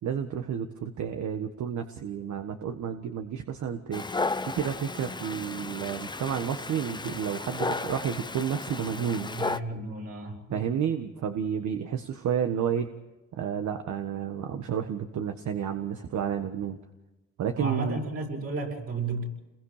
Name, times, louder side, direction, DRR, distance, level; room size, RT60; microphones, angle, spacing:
voice 1, 0.0-4.0 4.4-9.3 10.5-12.9 13.3-16.8 17.4-18.0, right 8 dB, 70° right, 6 dB, 1.6 m, -31 dB
Dog, 3.9-9.6, left 3 dB, 15° left, 0.8 m, -34 dB
voice 2, 9.3-10.7 17.5-19.3, right 3 dB, 50° right, 1 dB, 6.9 m, -33 dB
28.5 x 22.0 x 5.1 m, 1.1 s
cardioid pair, 90°, 30 cm